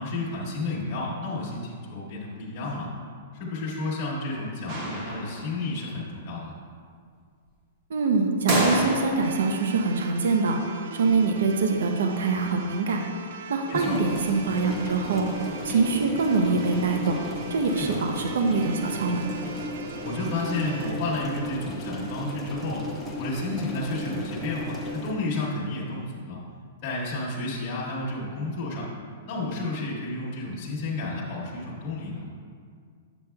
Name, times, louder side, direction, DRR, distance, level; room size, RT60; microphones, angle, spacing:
voice 1, 0.0-2.9 3.3-6.5 13.7-14.0 17.7-18.0 20.0-22.8 23.2-26.4 26.8-28.9 29.2-32.2, left 2 dB, 25° left, -7 dB, 1.2 m, -31 dB
sound 1, 4.7-5.7 8.5-9.5, right 1 dB, 30° right, 1.0 m, -27 dB
voice 2, 7.9-10.6 10.9-13.0 13.5-17.2 17.5-19.2, right 4 dB, 80° right, 3 dB, 0.7 m, -24 dB
sound 2, 9.2-21.0, right 6 dB, 55° right, 0.4 m, -41 dB
sound 3, 13.7-25.1, left 1 dB, 10° left, 0.6 m, -35 dB
9.1 x 7.2 x 2.3 m, 2.1 s
hypercardioid pair, 180°, 0 cm